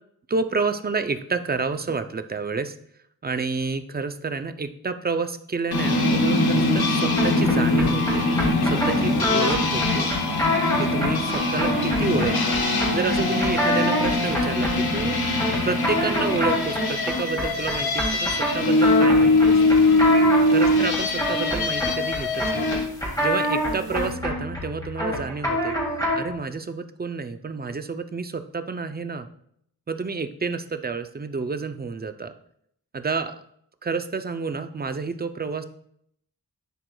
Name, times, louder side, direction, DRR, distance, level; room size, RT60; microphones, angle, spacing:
voice 1, 0.3-2.7 3.2-8.3 8.6-10.1 10.8-15.2 15.6-19.8 20.5-22.8 23.2-25.7 26.2-29.3 29.9-32.3 32.9-33.3 33.8-35.6, right 4 dB, 25° right, 9 dB, 0.4 m, -29 dB
sound 1, 5.7-22.9, left 2 dB, 75° left, 0.9 m, -22 dB
sound 2, 7.2-26.4, left 1 dB, 10° left, 2.5 m, -27 dB
11.0 x 4.6 x 2.2 m, 0.70 s
wide cardioid pair, 95°, 37 cm